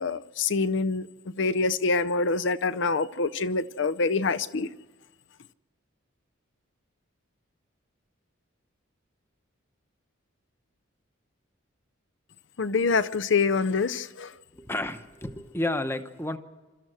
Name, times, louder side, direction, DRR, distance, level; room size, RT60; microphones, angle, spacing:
voice 1, 0.0-4.7 12.6-14.3, left 4 dB, 60° left, 17 dB, 0.6 m, -26 dB
voice 2, 14.5-16.4, left 1 dB, 10° left, 9 dB, 0.9 m, -31 dB
25.5 x 13.5 x 7.8 m, 1.3 s
head